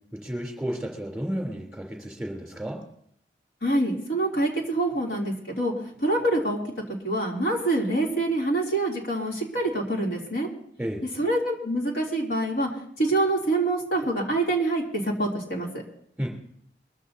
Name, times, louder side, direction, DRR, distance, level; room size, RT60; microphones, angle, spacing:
voice 1, 0.1-2.8 10.8-11.0 16.2-16.3, equal, 5° right, -1 dB, 3.4 m, -32 dB
voice 2, 3.6-5.7 6.0-6.6 7.0-10.5 11.2-12.7 13.0-15.7, right 2 dB, 70° left, -2 dB, 3.0 m, -25 dB
22.5 x 14.5 x 2.8 m, 0.67 s
head